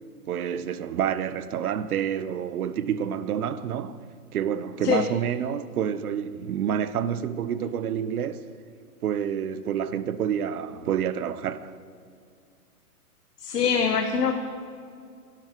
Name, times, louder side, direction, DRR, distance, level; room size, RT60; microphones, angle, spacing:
voice 1, 0.3-4.0 4.3-8.4 9.0-11.7, right 9 dB, 70° right, 1.0 m, -28 dB
voice 2, 13.4-14.3, left 6 dB, 85° left, 1.4 m, -23 dB
23.0 x 12.0 x 4.6 m
hypercardioid pair, 145°, 46 cm